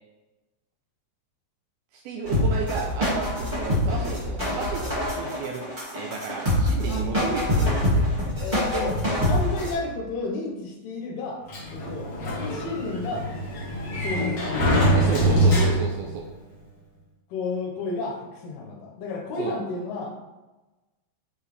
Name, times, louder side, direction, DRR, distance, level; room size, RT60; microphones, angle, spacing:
voice 1, 1.9-5.6 5.9-8.1 14.9-16.2 19.4-19.5, right 5 dB, 85° right, 0 dB, 2.2 m, -33 dB
sound 1, 2.2-9.7, left 1 dB, 25° right, 0.9 m, -25 dB
voice 2, 8.4-9.0 9.2-11.4 11.7-12.1 12.4-13.3 13.9-15.5 17.3-20.1, left 3 dB, 75° left, 1 dB, 2.6 m, -32 dB
Sliding door, 11.5-16.2, right 1 dB, 60° left, 1.6 m, -23 dB
7.3 x 4.5 x 3.3 m, 1.1 s
omnidirectional pair, 4.9 m